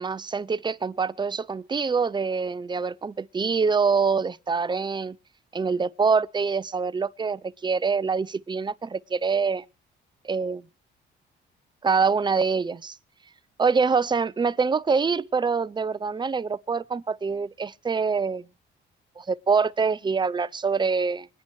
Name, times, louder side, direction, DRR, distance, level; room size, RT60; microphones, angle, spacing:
voice 1, 0.0-5.2 5.5-9.6 10.2-10.6 11.8-13.0 13.6-18.5 19.2-21.3, right 5 dB, 20° right, 0.6 m, -25 dB
25.0 x 9.8 x 3.2 m
cardioid pair, 90°, 20 cm